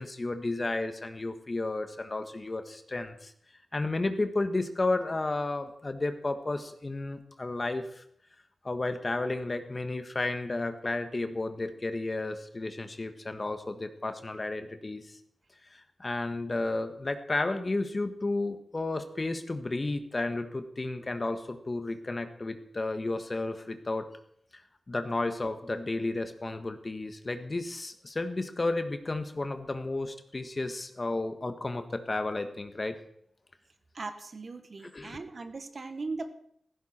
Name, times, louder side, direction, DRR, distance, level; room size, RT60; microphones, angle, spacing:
voice 1, 0.0-3.3 3.7-8.0 8.6-15.2 15.7-24.1 24.9-33.0 34.8-35.2, left 2 dB, 35° left, 8 dB, 1.5 m, -32 dB
voice 2, 33.9-36.3, right 3 dB, 50° right, 8 dB, 1.5 m, -39 dB
15.5 x 15.0 x 4.5 m, 0.67 s
wide cardioid pair, 85°, 0 cm